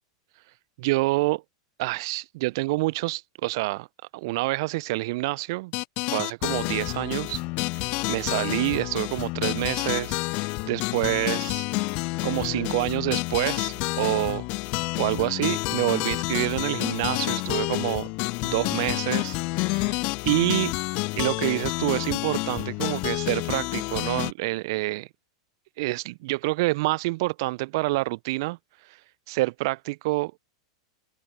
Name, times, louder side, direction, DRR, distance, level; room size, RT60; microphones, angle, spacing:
voice 1, 0.8-1.4 1.8-3.9 4.1-5.7 6.1-7.4 7.7-11.7 12.2-14.5 15.0-18.1 18.4-20.7 21.2-25.1 25.8-28.6 29.3-30.4, right 22 dB, 55° right, 0.5 m, -27 dB
sound 1, 5.7-24.3, left 27 dB, 45° left, 0.4 m, -29 dB
open air
figure-of-eight pair, 95°, 3 cm